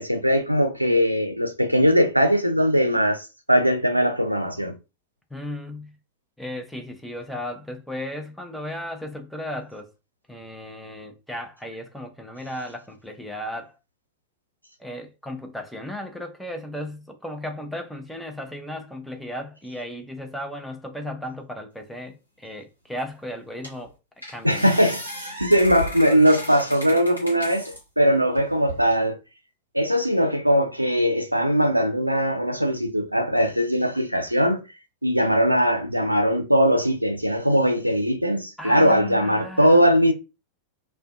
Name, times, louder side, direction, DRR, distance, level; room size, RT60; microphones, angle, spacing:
voice 1, 0.0-4.7 24.4-29.2 29.7-34.6 35.0-40.1, equal, 90° right, 0.4 m, -20 dB
voice 2, 5.3-5.9 6.4-9.9 10.3-13.8 14.8-23.9 24.3-24.6 38.6-39.8, left 1 dB, 5° left, 0.5 m, -35 dB
sound 1, 23.0-23.1 23.6-23.9 24.2-27.8 28.3-29.0, equal, 90° left, 1.0 m, -36 dB
2.5 x 2.1 x 2.3 m
figure-of-eight pair, 90°, 0 cm